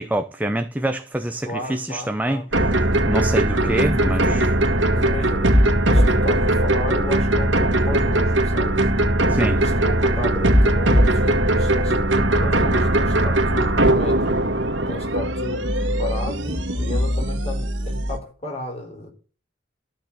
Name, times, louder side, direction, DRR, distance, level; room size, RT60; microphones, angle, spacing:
voice 1, 0.0-4.5 9.3-9.6, right 1 dB, 10° right, 0.7 m, -26 dB
voice 2, 1.4-2.7 3.6-4.5 4.9-5.6 5.8-8.9 9.5-14.3 14.9-19.1, left 2 dB, 35° left, 4.3 m, -34 dB
sound 1, 2.5-18.2, right 1 dB, 85° right, 1.9 m, -19 dB
13.5 x 6.1 x 8.7 m
head